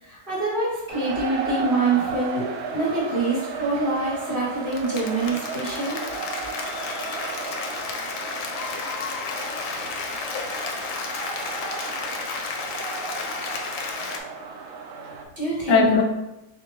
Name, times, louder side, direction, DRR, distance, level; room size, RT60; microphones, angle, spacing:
voice 1, 0.0-2.5 2.7-6.0 15.4-16.0, right 3 dB, 35° right, -7 dB, 1.5 m, -25 dB
sound 1, 0.9-15.2, right 4 dB, 70° right, 1.0 m, -34 dB
Applause, 4.5-14.2, left 4 dB, 70° left, 0.8 m, -32 dB
voice 2, 9.5-10.5 15.7-16.0, left 5 dB, 90° left, 3 dB, 1.2 m, -24 dB
3.6 x 3.6 x 2.9 m, 0.94 s
omnidirectional pair, 1.8 m